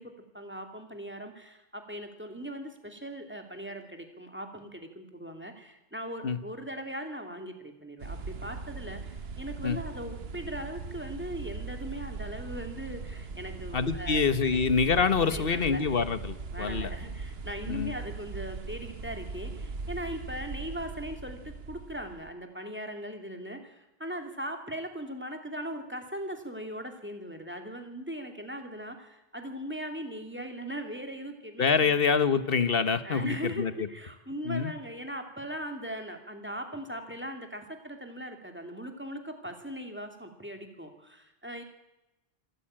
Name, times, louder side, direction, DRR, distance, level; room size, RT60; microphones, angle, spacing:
voice 1, 0.0-14.6 14.9-15.8 16.5-31.9 33.0-41.6, right 1 dB, 10° right, 4 dB, 2.7 m, -39 dB
sound 1, 8.0-22.3, right 4 dB, 75° right, 1.4 m, -40 dB
voice 2, 13.7-16.9 17.7-17.9 31.6-33.7 34.4-34.7, left 5 dB, 65° left, 12 dB, 1.4 m, -26 dB
26.0 x 13.5 x 8.8 m, 0.94 s
omnidirectional pair, 1.1 m